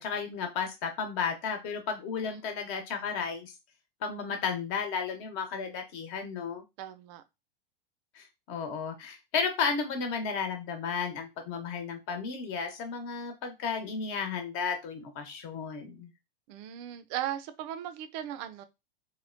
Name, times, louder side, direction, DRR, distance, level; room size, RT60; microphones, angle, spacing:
voice 1, 0.0-3.5 4.0-6.6 8.1-16.1, left 5 dB, 45° left, 1.0 m, -33 dB
voice 2, 6.8-7.2 16.5-18.6, right 11 dB, 45° right, 0.5 m, -37 dB
3.6 x 2.2 x 2.5 m
hypercardioid pair, 105°, 29 cm